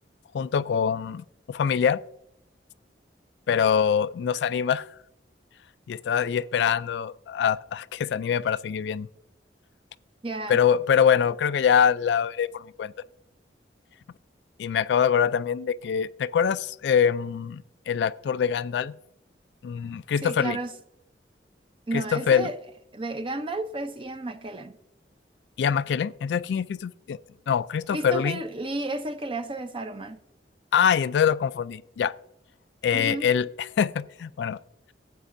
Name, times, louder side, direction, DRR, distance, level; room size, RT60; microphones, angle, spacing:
voice 1, 0.3-2.0 3.5-4.9 5.9-9.1 10.5-12.9 14.6-18.9 19.6-20.6 21.9-22.5 25.6-27.2 27.5-28.4 30.7-32.1 32.8-33.5 33.8-34.6, left 7 dB, 75° left, 0.3 m, -24 dB
voice 2, 10.2-10.6 20.2-20.7 21.9-22.6 22.9-24.8 27.9-30.2 32.9-33.3, right 2 dB, 30° right, 0.6 m, -32 dB
12.5 x 8.2 x 2.6 m
head